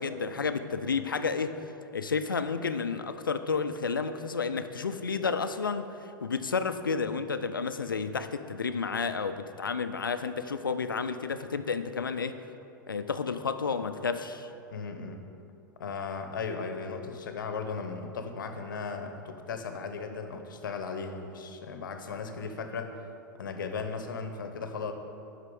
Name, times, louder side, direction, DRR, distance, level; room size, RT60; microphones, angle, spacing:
voice 1, 0.0-1.6 1.9-12.3 12.9-14.5, left 5 dB, 90° left, 10 dB, 0.5 m, -31 dB
voice 2, 14.7-15.2 15.8-23.0 23.4-24.9, left 5 dB, 75° left, 6 dB, 0.8 m, -36 dB
8.2 x 5.7 x 5.3 m, 2.7 s
hypercardioid pair, 95°, 11 cm